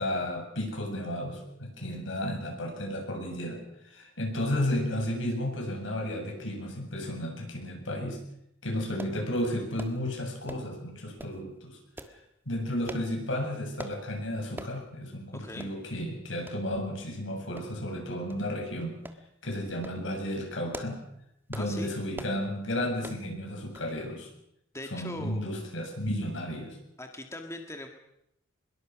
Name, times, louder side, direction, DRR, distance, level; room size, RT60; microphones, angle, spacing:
voice 1, 0.0-8.2 8.6-11.8 12.5-19.0 19.4-21.0 21.5-24.3 24.9-26.8, left 1 dB, 70° left, 2 dB, 7.5 m, -33 dB
sound 1, 9.0-9.2 9.8-10.0 10.5-10.7 11.2-11.4 12.0-12.2 12.9-13.1 13.8-14.0 14.6-14.8 15.2-15.3 15.6-15.8 16.5-16.6 17.6-17.9 18.3-18.4 19.1-19.2 19.7-20.0 20.5-21.0 21.5-21.7 22.1-22.4 23.0-23.2 23.8-23.9 24.2-24.3, right 1 dB, 10° right, 1.6 m, -43 dB
voice 2, 15.3-15.7 21.5-21.9 24.7-25.4 27.0-27.9, left 1 dB, 15° left, 4 dB, 1.7 m, -40 dB
24.0 x 22.0 x 6.2 m, 0.80 s
head